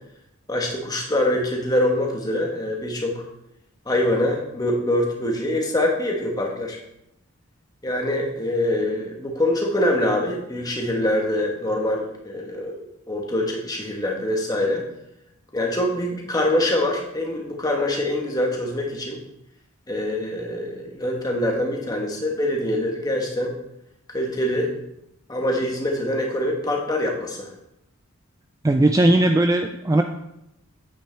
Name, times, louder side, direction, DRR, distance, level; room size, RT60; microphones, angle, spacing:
voice 1, 0.5-3.2 3.8-6.8 7.8-14.8 15.5-19.2 19.9-23.5 24.1-24.7 25.3-27.5, left 1 dB, 20° left, 0 dB, 1.3 m, -24 dB
voice 2, 28.6-30.0, right 1 dB, 15° right, 6 dB, 0.3 m, -18 dB
8.9 x 8.3 x 3.4 m, 0.83 s
head